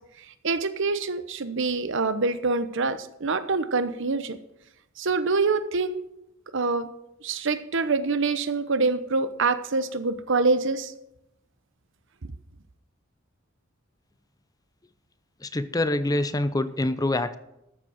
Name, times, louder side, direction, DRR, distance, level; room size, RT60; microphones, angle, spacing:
voice 1, 0.4-4.4 5.0-6.0 6.5-6.9 7.2-10.9, right 3 dB, 65° right, 12 dB, 0.9 m, -25 dB
voice 2, 15.4-17.4, left 1 dB, 20° left, 12 dB, 0.6 m, -25 dB
13.0 x 7.5 x 6.3 m, 0.84 s
head